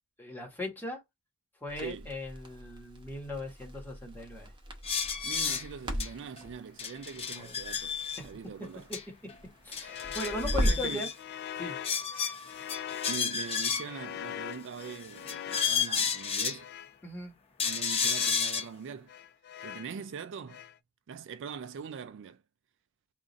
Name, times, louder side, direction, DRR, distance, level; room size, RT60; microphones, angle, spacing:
voice 1, 0.2-1.0 1.6-4.5 7.3-7.5 9.6-11.1 11.6-11.8 17.0-17.3, left 1 dB, 10° left, 1.4 m, -38 dB
Crackle, 1.7-11.0, equal, 20° right, 0.9 m, -37 dB
voice 2, 1.8-2.1 5.2-7.9 8.2-8.9 10.5-11.1 13.1-16.7 17.6-19.1 19.6-20.6 21.1-22.4, right 6 dB, 55° right, 0.3 m, -42 dB
sound 1, 4.8-5.7 6.0-6.1 6.4-6.5 6.8-8.2 8.9-9.0 9.3-9.4 9.7-11.1 11.8-14.0 14.8-16.6 17.6-18.7, left 6 dB, 25° left, 0.7 m, -32 dB
sound 2, 9.8-17.0 17.6-18.4 19.1-20.0 20.5-20.8, left 10 dB, 45° left, 0.3 m, -43 dB
3.8 x 2.5 x 3.9 m
head